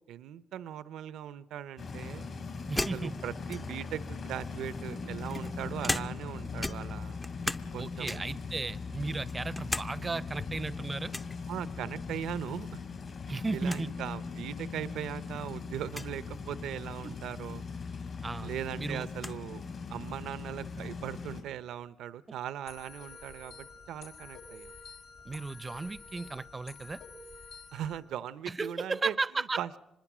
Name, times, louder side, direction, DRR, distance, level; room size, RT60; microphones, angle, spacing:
voice 1, 0.1-2.2 2.9-7.2 7.7-8.3 11.5-12.8 13.5-17.6 18.4-19.6 19.9-24.7 27.7-29.1 29.6-29.8, right 10 dB, 80° right, 16 dB, 0.7 m, -39 dB
sound 1, 1.8-21.4, left 4 dB, 55° left, 4.8 m, -40 dB
voice 2, 2.7-3.2 7.8-11.1 13.3-13.9 17.0-17.1 18.2-18.5 18.8-19.1 25.2-27.0 28.5-29.6, right 3 dB, 25° right, 19 dB, 0.7 m, -35 dB
sound 2, 2.8-3.9 4.7-6.3 6.6-7.7 8.0-8.4 8.9-9.9 10.2-10.3 11.1-11.4 12.8-13.1 13.4-13.5 13.7-13.9 14.7-14.8 15.8-16.1 17.8-17.9 18.2-19.4, left 1 dB, 15° left, 0.7 m, -37 dB
sound 3, 22.7-28.0, left 4 dB, 80° left, 5.0 m, -49 dB
25.0 x 21.0 x 6.1 m, 0.96 s
cardioid pair, 90°, 0 cm